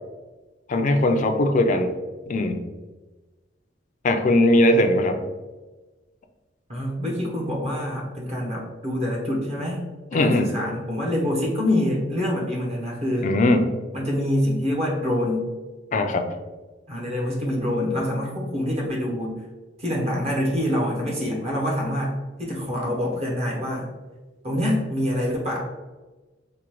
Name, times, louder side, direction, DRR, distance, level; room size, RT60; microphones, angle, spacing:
voice 1, 0.7-1.9 2.3-2.6 4.0-5.2 10.1-10.5 13.2-13.7 15.9-16.3, left 1 dB, 40° left, 6 dB, 0.4 m, -19 dB
voice 2, 6.7-9.8 10.1-13.3 13.9-15.5 16.9-19.4 19.8-23.9 24.4-25.6, left 1 dB, 35° right, -2 dB, 0.8 m, -26 dB
4.7 x 2.1 x 3.0 m, 1.2 s
head